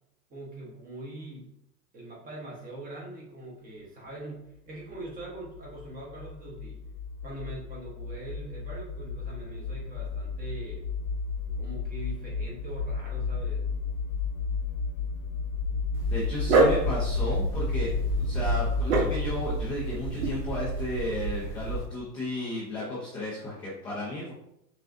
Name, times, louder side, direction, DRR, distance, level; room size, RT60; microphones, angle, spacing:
voice 1, 0.3-1.5 1.9-6.8 7.2-10.8 11.6-13.6, right 1 dB, 15° right, -4 dB, 1.1 m, -42 dB
sound 1, 4.9-20.2, left 4 dB, 55° left, 0.6 m, -33 dB
Dog, 15.9-21.9, right 3 dB, 55° right, 1.1 m, -28 dB
voice 2, 16.1-17.9 18.2-24.3, left 1 dB, 10° left, -9 dB, 0.5 m, -34 dB
6.0 x 2.4 x 2.5 m, 0.79 s
hypercardioid pair, 135°, 50 cm